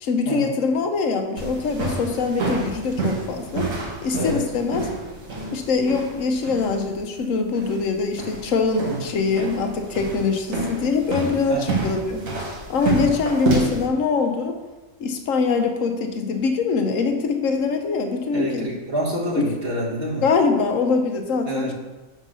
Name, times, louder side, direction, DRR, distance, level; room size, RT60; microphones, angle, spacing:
voice 1, 0.0-3.7 4.0-4.9 5.5-14.6 15.0-18.7 20.2-21.7, left 4 dB, 75° left, 5 dB, 1.2 m, -23 dB
sound 1, 1.4-13.9, right 3 dB, 80° right, 1.7 m, -29 dB
voice 2, 11.5-11.8 18.3-20.2 21.5-21.7, right 1 dB, 50° right, -5 dB, 1.5 m, -27 dB
5.6 x 4.5 x 6.1 m, 1.2 s
omnidirectional pair, 1.4 m